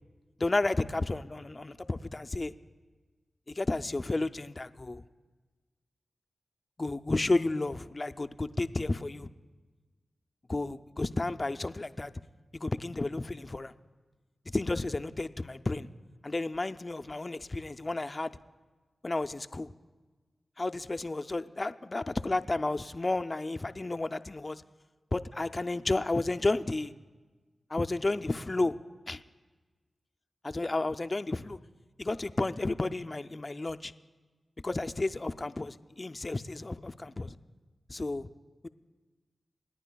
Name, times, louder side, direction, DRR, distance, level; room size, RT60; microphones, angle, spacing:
voice 1, 0.4-2.5 3.5-5.0 6.8-9.3 10.5-12.1 12.5-13.7 14.5-15.9 16.2-18.3 19.0-19.7 20.6-24.6 25.1-26.9 27.7-28.8 29.1-29.2 30.4-31.6 32.0-33.9 34.6-37.4 37.9-38.3 38.6-38.7, left 2 dB, 40° left, 10 dB, 0.4 m, -32 dB
28.0 x 9.9 x 2.3 m, 1.3 s
cardioid pair, 55°, 0 cm